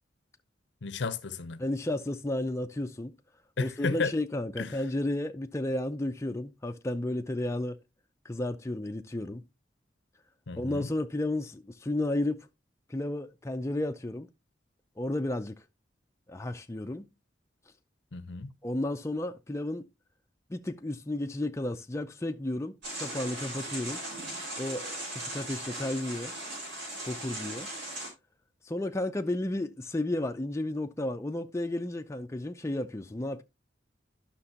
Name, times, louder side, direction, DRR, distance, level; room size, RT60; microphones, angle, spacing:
voice 1, 0.8-1.6 3.6-4.1 4.6-4.7 10.5-10.9 18.1-18.5, left 4 dB, 75° left, 0.7 m, -33 dB
voice 2, 1.6-3.2 3.6-7.8 8.2-9.4 10.6-12.5 12.9-14.3 15.0-15.6 16.3-17.1 18.6-19.9 20.5-24.0 24.6-24.8 25.1-26.3 27.1-27.7 28.7-33.4, left 1 dB, 15° left, 0.5 m, -32 dB
sound 1, 22.8-28.1, right 1 dB, 70° right, 5.4 m, -38 dB
12.0 x 6.0 x 2.8 m
head